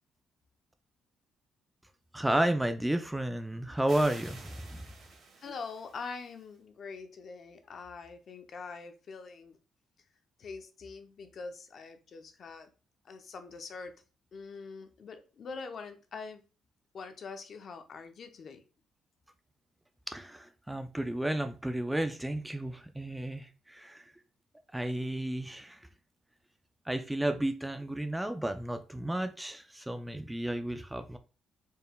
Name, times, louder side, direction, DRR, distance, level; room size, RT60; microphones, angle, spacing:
voice 1, 2.1-4.8 20.1-24.1 24.7-25.8 26.9-31.2, right 1 dB, 10° right, 8 dB, 0.4 m, -32 dB
sound 1, 3.9-6.4, right 3 dB, 60° right, 1.4 m, -50 dB
voice 2, 5.4-9.6 10.4-12.7 13.0-13.9 14.3-16.4 16.9-18.6, left 4 dB, 55° left, 7 dB, 0.6 m, -44 dB
4.5 x 3.2 x 2.2 m, 0.33 s
cardioid pair, 90°, 0 cm